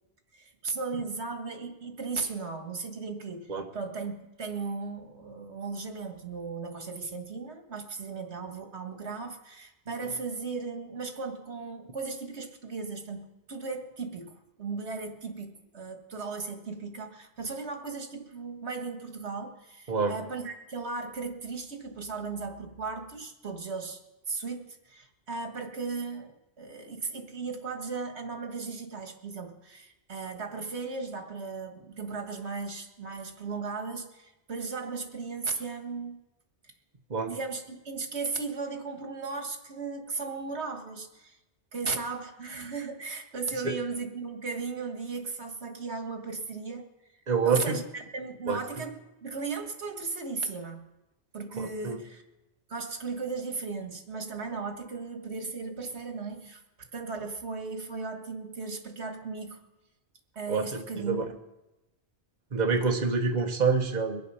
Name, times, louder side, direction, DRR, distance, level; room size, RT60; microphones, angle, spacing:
voice 1, 0.3-24.0 24.3-36.2 37.3-41.4 41.7-46.9 47.1-50.9 51.3-52.2 52.7-59.6 60.4-61.2, right 4 dB, 80° right, 5 dB, 1.8 m, -36 dB
voice 2, 47.3-47.8 48.5-48.6 51.6-52.0 60.5-61.2 62.5-64.2, right 4 dB, 40° right, 3 dB, 1.2 m, -27 dB
22.5 x 7.8 x 5.6 m, 0.97 s
omnidirectional pair, 1.1 m